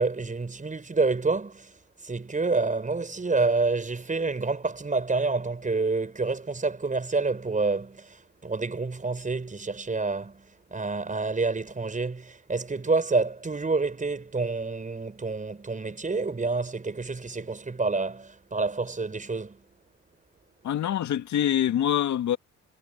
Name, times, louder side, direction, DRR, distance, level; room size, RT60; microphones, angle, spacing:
voice 1, 0.0-19.6, right 3 dB, 25° right, 6.5 m, -28 dB
voice 2, 20.6-22.4, left 10 dB, 70° left, 2.1 m, -25 dB
cardioid pair, 90°, 30 cm